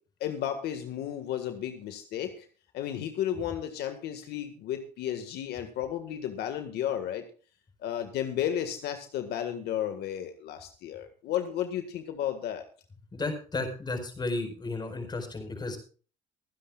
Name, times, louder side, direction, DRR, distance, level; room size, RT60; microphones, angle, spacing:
voice 1, 0.2-2.5 2.7-7.2 7.8-12.6, left 10 dB, 75° left, 7 dB, 1.7 m, -33 dB
voice 2, 13.1-15.8, left 2 dB, 25° left, 6 dB, 4.7 m, -33 dB
24.5 x 10.0 x 2.4 m, 0.39 s
cardioid pair, 110°, 17 cm